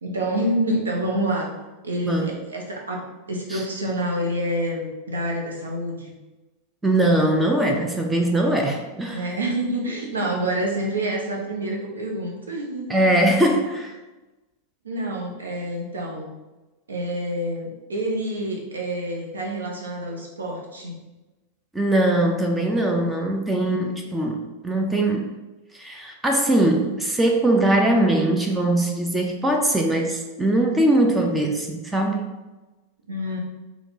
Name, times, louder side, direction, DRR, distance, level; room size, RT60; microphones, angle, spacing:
voice 1, 0.0-1.5 1.8-3.0 3.3-6.1 9.1-12.9 14.8-16.3 16.9-20.9 23.0-23.4 33.1-33.4, right 1 dB, 70° right, -1 dB, 0.8 m, -27 dB
voice 2, 6.8-9.3 12.9-13.9 21.7-25.3 25.7-32.3, right 1 dB, 10° right, 2 dB, 0.4 m, -21 dB
4.2 x 2.3 x 4.0 m, 1.1 s
figure-of-eight pair, 90°, 0 cm